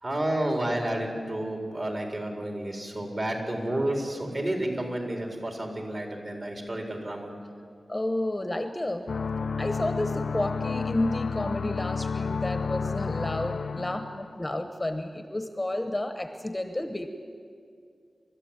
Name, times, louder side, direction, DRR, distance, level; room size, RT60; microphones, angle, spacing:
voice 1, 0.0-7.3, right 1 dB, 40° right, 2 dB, 4.1 m, -30 dB
voice 2, 7.9-9.1 9.6-17.1, left 1 dB, 15° left, 7 dB, 1.1 m, -31 dB
sound 1, 9.1-14.4, left 5 dB, 75° left, 0.5 m, -31 dB
29.0 x 13.5 x 9.0 m, 2.3 s
wide cardioid pair, 100°, 0 cm